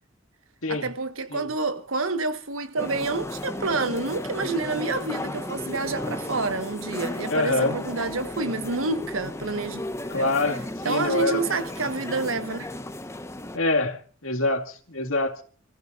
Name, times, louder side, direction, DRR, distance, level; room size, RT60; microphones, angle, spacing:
voice 1, 0.7-9.8 10.1-10.3 10.8-12.7, right 3 dB, 90° right, 1.5 m, -28 dB
sound 1, 2.8-13.6, left 1 dB, 15° left, 0.9 m, -34 dB
voice 2, 7.3-7.8 10.1-11.5 13.5-15.4, left 2 dB, 85° left, 2.2 m, -26 dB
28.0 x 15.0 x 2.6 m
head